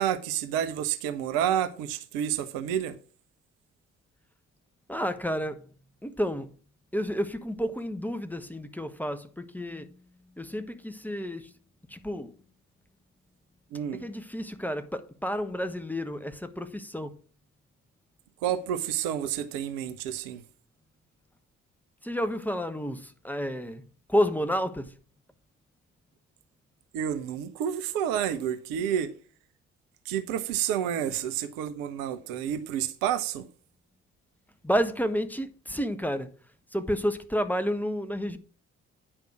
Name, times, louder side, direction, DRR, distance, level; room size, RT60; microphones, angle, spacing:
voice 1, 0.0-3.0 13.7-14.0 18.4-20.4 26.9-29.1 30.1-33.4, right 10 dB, 70° right, 0.9 m, -29 dB
voice 2, 4.9-5.6 6.0-6.5 6.9-9.9 10.4-11.5 11.9-12.3 13.9-17.1 22.0-23.8 24.1-24.9 34.6-36.3 36.7-38.4, equal, 5° left, 1.1 m, -30 dB
9.8 x 5.2 x 6.0 m
hypercardioid pair, 45°, 35 cm